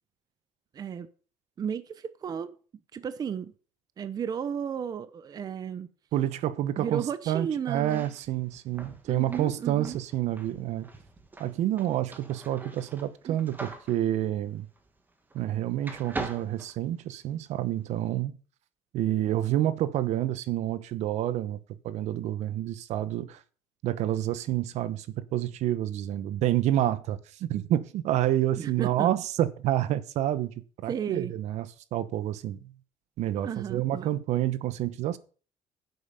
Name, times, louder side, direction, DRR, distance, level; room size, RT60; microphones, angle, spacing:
voice 1, 0.7-1.1 1.6-2.5 2.9-3.5 4.0-5.9 6.8-8.1 9.1-10.0 13.3-13.4 28.6-29.1 30.9-31.3 33.4-34.1, right 8 dB, 30° right, 0.7 m, -33 dB
voice 2, 6.1-10.9 11.4-14.7 15.3-18.4 18.9-23.4 23.8-32.7 33.2-35.2, right 13 dB, 65° right, 0.9 m, -28 dB
sound 1, 7.8-15.5 15.8-17.5, right 2 dB, 15° right, 1.7 m, -43 dB
10.5 x 8.0 x 5.6 m
cardioid pair, 155°, 12 cm